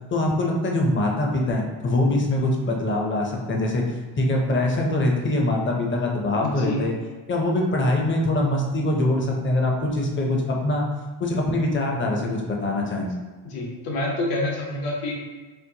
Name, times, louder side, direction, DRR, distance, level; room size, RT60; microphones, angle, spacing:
voice 1, 0.1-3.8 4.2-6.9 7.3-10.9 11.2-13.1, left 1 dB, 25° left, 0 dB, 0.6 m, -23 dB
voice 2, 6.4-6.8 13.4-15.1, left 2 dB, 70° left, -2 dB, 1.0 m, -27 dB
4.4 x 2.0 x 2.8 m, 1.3 s
cardioid pair, 100°, 44 cm